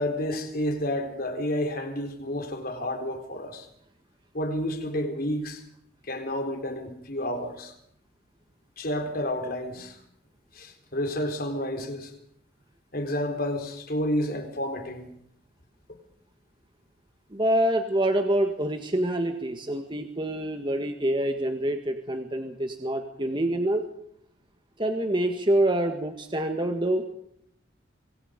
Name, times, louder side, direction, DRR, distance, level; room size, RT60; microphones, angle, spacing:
voice 1, 0.0-3.7 4.3-5.6 6.0-7.7 8.8-10.0 10.5-12.1 12.9-15.1, left 1 dB, 50° left, 4.0 m, -30 dB
voice 2, 17.3-23.8 24.8-27.0, right 1 dB, 25° right, 1.6 m, -26 dB
26.5 x 24.5 x 5.3 m
head